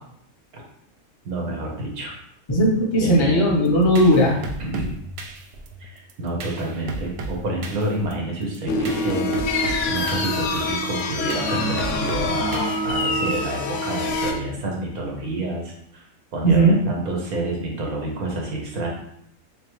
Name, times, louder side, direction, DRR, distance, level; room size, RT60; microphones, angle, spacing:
voice 1, 1.2-2.1 3.0-3.5 4.6-4.9 5.8-16.1 16.3-18.9, right 1 dB, 90° right, -1 dB, 1.4 m, -29 dB
voice 2, 2.5-4.4 16.4-16.8, right 1 dB, 30° left, -1 dB, 0.6 m, -17 dB
sound 1, 3.6-13.3, right 3 dB, 65° right, 0.6 m, -35 dB
sound 2, 8.7-14.3, left 2 dB, 65° left, 0.8 m, -25 dB
3.6 x 3.1 x 3.1 m, 0.72 s
omnidirectional pair, 1.5 m